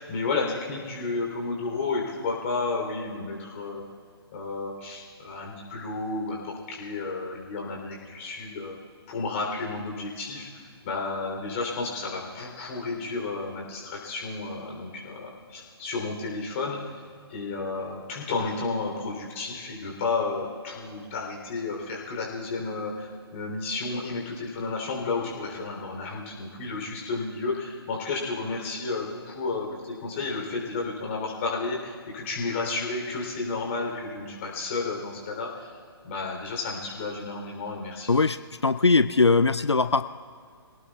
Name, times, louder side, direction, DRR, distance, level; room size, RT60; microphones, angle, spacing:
voice 1, 0.0-3.8 4.3-8.8 9.1-10.5 10.8-17.0 17.3-35.8 36.0-38.1, left 3 dB, 30° left, -1 dB, 3.2 m, -32 dB
voice 2, 38.1-40.0, left 3 dB, 90° left, 12 dB, 0.4 m, -21 dB
25.0 x 18.0 x 2.3 m, 2.2 s
figure-of-eight pair, 135°, 14 cm